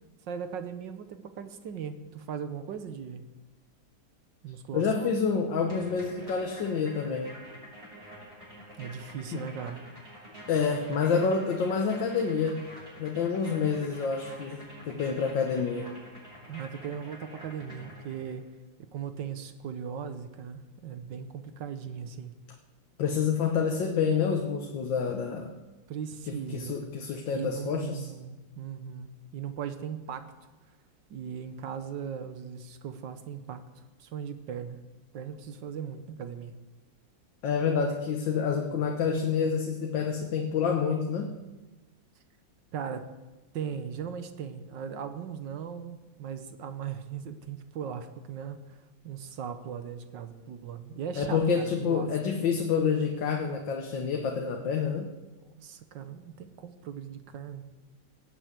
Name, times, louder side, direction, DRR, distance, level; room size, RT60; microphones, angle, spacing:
voice 1, 0.3-3.3 4.4-5.1 8.8-9.8 16.5-18.5 18.9-22.3 25.9-26.9 27.3-30.3 31.1-33.6 34.0-34.8 35.1-36.5 42.7-43.1 43.5-48.8 49.0-52.1 55.6-57.6, right 7 dB, 75° right, 10 dB, 1.6 m, -38 dB
voice 2, 4.7-7.3 9.3-9.4 10.5-12.7 13.0-15.9 23.0-25.5 26.3-28.1 37.4-41.4 51.2-55.1, left 6 dB, 80° left, 3 dB, 1.8 m, -28 dB
sound 1, 5.6-18.4, equal, 15° right, 5.7 m, -48 dB
18.0 x 8.0 x 8.1 m, 1.1 s
omnidirectional pair, 2.0 m